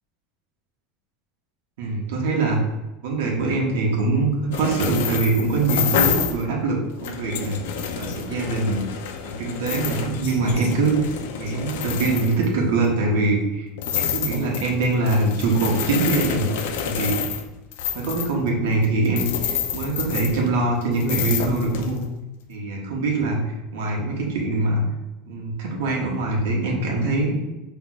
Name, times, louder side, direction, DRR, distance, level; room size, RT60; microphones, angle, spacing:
voice 1, 1.8-2.6 3.0-7.6 8.0-8.8 9.2-11.1 11.4-13.7 14.0-16.5 16.8-17.2 17.9-22.0 22.5-23.4 23.7-24.8 25.3-27.5, right 3 dB, 80° right, -1 dB, 1.2 m, -23 dB
sound 1, 4.5-6.4 6.9-12.9 13.8-20.7 21.0-22.0, left 8 dB, 80° left, 0.5 m, -28 dB
5.9 x 3.3 x 2.4 m, 0.99 s
supercardioid pair, 175°, 0 cm